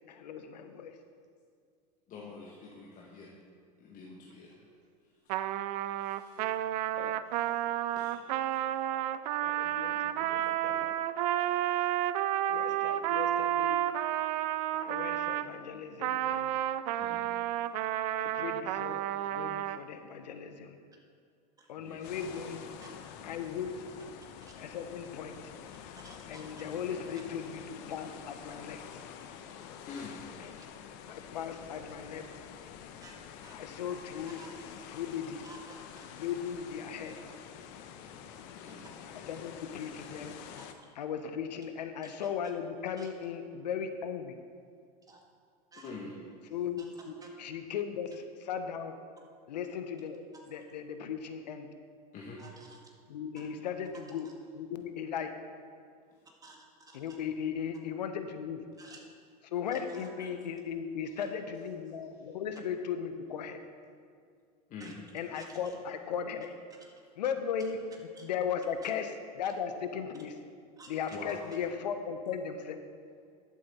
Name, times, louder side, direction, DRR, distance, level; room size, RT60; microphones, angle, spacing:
voice 1, 0.1-0.9 7.0-7.3 8.9-11.0 12.5-13.8 14.7-16.5 18.1-20.8 21.7-22.7 23.2-23.8 24.6-25.5 26.3-28.8 30.4-30.6 31.1-32.3 33.5-34.4 34.9-35.4 36.1-37.2 39.3-40.4 41.0-44.4 46.5-48.1 48.4-48.9 49.5-51.7 53.1-54.3 54.5-55.3 56.9-58.6 59.5-63.6 65.1-66.5 67.2-67.8 68.2-70.4 70.9-72.8, left 7 dB, 90° left, 8 dB, 0.8 m, -37 dB
voice 2, 2.1-3.3 3.8-4.6 6.0-6.4 7.2-7.6 8.0-8.2 9.3-9.5 10.7-10.9 17.0-17.3 21.8-22.1 29.9-30.2 38.5-38.8 45.8-46.2 52.1-52.4 53.4-53.5 61.0-61.1 64.7-65.0 71.1-71.3, left 4 dB, 40° left, -3 dB, 1.3 m, -46 dB
Trumpet, 5.3-15.5 16.0-19.8, right 12 dB, 70° right, 0.5 m, -31 dB
sound 1, 22.0-40.7, left 8 dB, 55° left, 0.8 m, -48 dB
voice 3, 26.0-26.4 33.0-33.6 34.3-34.7 35.4-35.9 40.6-40.7 42.0-42.1 43.0-43.1 45.1-45.2 45.7-46.0 46.8-46.9 47.2-47.3 50.3-50.6 52.4-52.8 53.4-53.5 53.9-54.0 56.4-57.2 58.8-59.0 59.7-60.3 61.2-61.3 64.8-64.9 65.4-65.7 67.6-67.7 68.2-68.3 68.8-68.9 70.8-71.4, right 2 dB, 15° right, -1 dB, 2.0 m, -54 dB
11.5 x 7.5 x 4.1 m, 2.2 s
hypercardioid pair, 105°, 21 cm